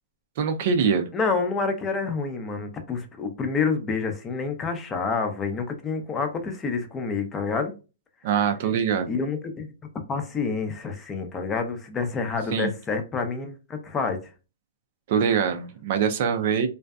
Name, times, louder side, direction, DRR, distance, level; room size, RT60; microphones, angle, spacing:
voice 1, 0.4-1.1 8.2-9.1 12.5-12.7 15.1-16.7, right 7 dB, 50° right, 0.4 m, -23 dB
voice 2, 1.1-7.7 9.1-9.7 10.1-14.2, left 4 dB, 15° left, 0.5 m, -28 dB
2.6 x 2.2 x 2.2 m
hypercardioid pair, 140°, 0 cm